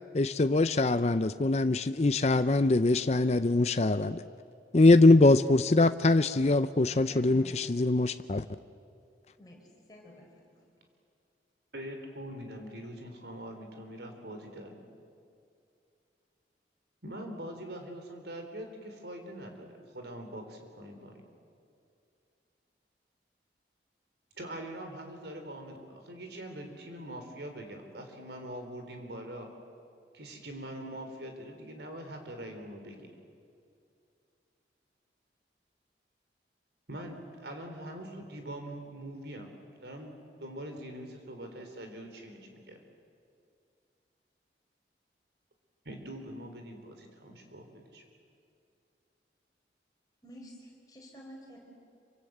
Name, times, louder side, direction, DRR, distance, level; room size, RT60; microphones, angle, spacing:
voice 1, 0.1-4.2 4.7-8.4, left 2 dB, 35° left, 11 dB, 0.5 m, -23 dB
voice 2, 6.8-7.7 9.4-10.3 50.2-51.6, equal, 20° left, -1 dB, 5.2 m, -50 dB
voice 3, 11.7-14.9 17.0-21.2 24.3-29.5 30.1-33.1 36.9-39.5 39.8-40.1 40.4-42.8 45.8-48.0, right 1 dB, 70° right, 5 dB, 3.8 m, -43 dB
26.5 x 25.0 x 7.9 m, 2.5 s
head